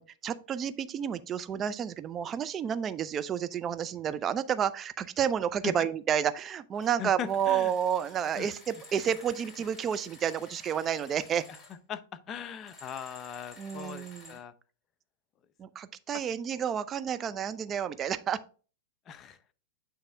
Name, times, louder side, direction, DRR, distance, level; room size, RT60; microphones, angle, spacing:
voice 1, 0.0-11.5 13.6-14.4 15.6-18.4, right 8 dB, 30° right, 0.6 m, -30 dB
sound 1, 6.7-7.0 7.3-11.8 12.6-14.4, left 2 dB, 15° left, 3.2 m, -52 dB
voice 2, 7.0-7.7 8.4-8.5 11.9-12.0 12.3-14.5 19.1-19.5, left 8 dB, 30° left, 0.7 m, -39 dB
8.9 x 3.4 x 4.5 m
hypercardioid pair, 110°, 0 cm